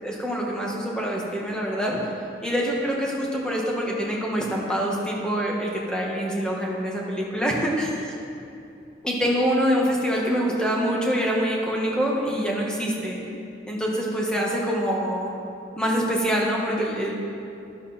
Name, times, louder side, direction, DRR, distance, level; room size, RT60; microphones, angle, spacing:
voice 1, 0.0-2.0 2.4-7.9 9.0-13.2 13.7-15.3 15.8-17.1, equal, 5° left, -3 dB, 1.7 m, -25 dB
14.0 x 11.0 x 4.4 m, 2.7 s
head